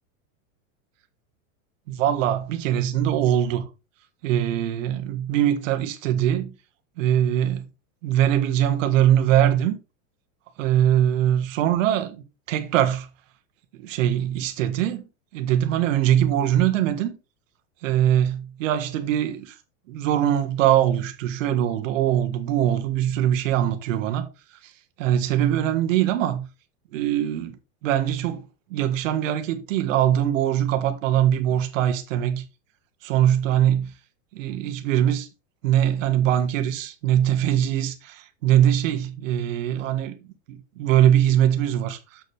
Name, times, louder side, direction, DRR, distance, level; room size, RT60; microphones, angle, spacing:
voice 1, 1.9-3.6 4.2-6.5 7.0-7.6 8.0-9.8 10.6-13.1 13.8-15.1 15.3-17.1 17.8-19.6 19.9-24.3 24.6-24.7 25.0-26.5 26.9-27.6 27.8-28.4 28.7-32.4 33.0-33.9 34.3-35.3 35.6-40.1 40.5-42.2, right 11 dB, 65° right, 1.7 m, -22 dB
7.6 x 7.0 x 3.4 m
supercardioid pair, 160°, 42 cm